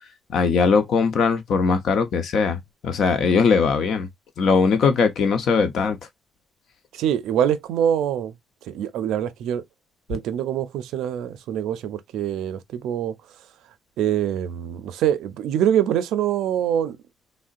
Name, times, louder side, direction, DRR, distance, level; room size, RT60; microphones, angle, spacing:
voice 1, 0.3-2.6 2.8-4.1 4.4-6.0, left 5 dB, 65° left, 0.7 m, -20 dB
voice 2, 7.0-8.3 8.7-9.6 10.1-13.1 14.0-17.0, right 10 dB, 85° right, 0.4 m, -24 dB
3.6 x 2.1 x 2.4 m
cardioid pair, 90°, 0 cm